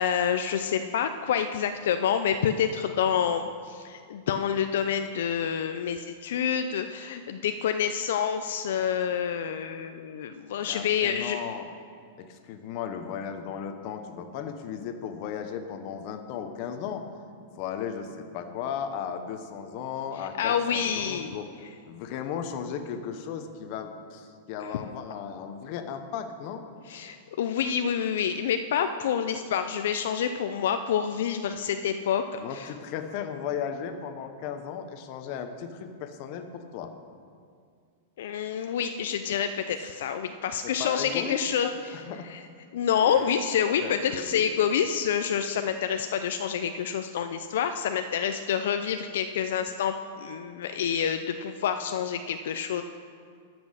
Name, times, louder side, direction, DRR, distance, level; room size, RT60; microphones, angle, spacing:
voice 1, 0.0-11.4 20.4-21.4 26.9-32.7 38.2-42.0 42.3-42.4 42.7-52.8, left 8 dB, 70° left, 8 dB, 0.5 m, -28 dB
voice 2, 10.6-11.7 12.2-17.0 17.6-21.5 21.9-26.6 32.4-36.9 40.6-42.3 43.0-43.4 43.8-44.5, left 7 dB, 40° left, 7 dB, 0.9 m, -36 dB
12.5 x 6.1 x 6.4 m, 2.2 s
supercardioid pair, 160°, 0 cm